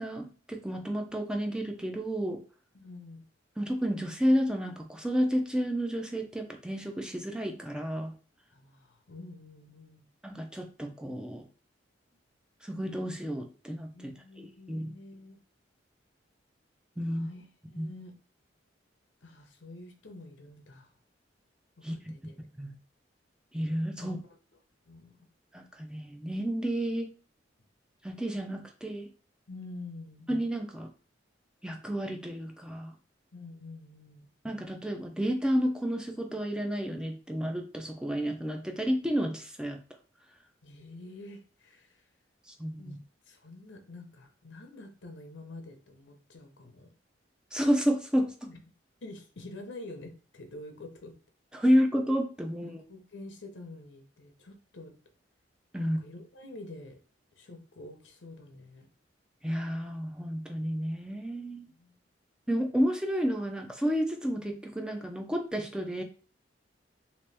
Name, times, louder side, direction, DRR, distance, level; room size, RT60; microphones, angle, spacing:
voice 1, 0.0-2.4 3.6-8.1 10.2-11.4 12.6-14.9 17.0-17.3 17.8-17.9 21.8-22.0 22.6-22.7 23.5-24.2 25.5-27.1 28.0-29.1 30.3-30.9 31.6-32.9 34.4-39.8 42.6-43.0 47.5-48.3 51.5-52.8 55.7-56.0 59.4-61.7 62.5-66.0, equal, 5° right, 4 dB, 0.4 m, -31 dB
voice 2, 2.7-3.2 8.5-10.1 13.9-15.4 17.1-18.2 19.2-20.9 21.8-22.3 24.0-24.2 24.9-25.1 29.5-30.3 33.3-34.3 40.6-42.0 42.8-43.0 43.3-46.9 48.5-48.6 49.0-51.1 52.5-54.9 55.8-57.0 57.4-58.9 61.6-61.9, left 2 dB, 80° left, 5 dB, 0.8 m, -47 dB
3.0 x 3.0 x 3.3 m, 0.38 s
head